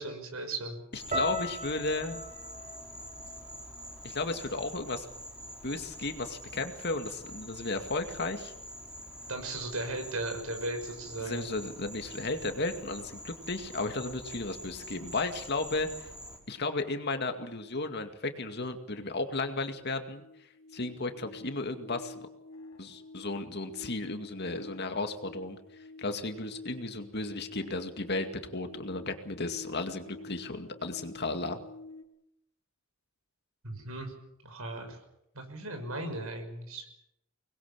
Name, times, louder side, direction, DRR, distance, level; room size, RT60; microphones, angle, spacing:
voice 1, 0.0-0.8 9.3-11.5 33.6-34.1 34.4-35.0 35.3-36.8, right 2 dB, 85° right, 5 dB, 6.2 m, -37 dB
voice 2, 0.9-2.2 4.0-5.1 5.6-8.5 11.2-16.1 16.5-20.2 20.7-22.1 22.8-25.6 26.0-31.6, left 2 dB, 50° left, 7 dB, 2.2 m, -34 dB
Insect, 0.9-16.4, equal, 5° right, 5.0 m, -46 dB
sound 1, 1.1-5.3 5.6-6.4 6.9-7.2, equal, 35° right, 4.7 m, -40 dB
sound 2, 18.5-18.6 18.8-32.0, left 2 dB, 75° left, 2.5 m, -49 dB
25.0 x 21.0 x 7.4 m, 0.81 s
head